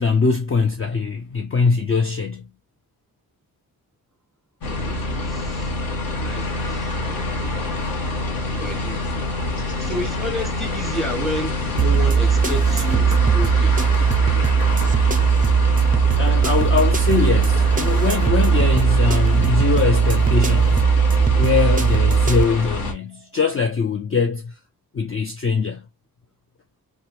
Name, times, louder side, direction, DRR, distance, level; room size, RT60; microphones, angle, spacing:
voice 1, 0.0-2.5 16.1-20.8 21.4-24.6 24.9-25.8, left 5 dB, 35° left, 0.5 m, -22 dB
sound 1, 4.6-22.9, left 2 dB, 65° left, 1.1 m, -27 dB
voice 2, 4.7-5.8 6.2-7.6 8.6-9.4 9.8-13.8, left 1 dB, ahead, 1.0 m, -32 dB
sound 2, 11.8-22.4, right 6 dB, 25° right, 0.4 m, -18 dB
3.3 x 2.2 x 2.9 m
wide cardioid pair, 115°, 37 cm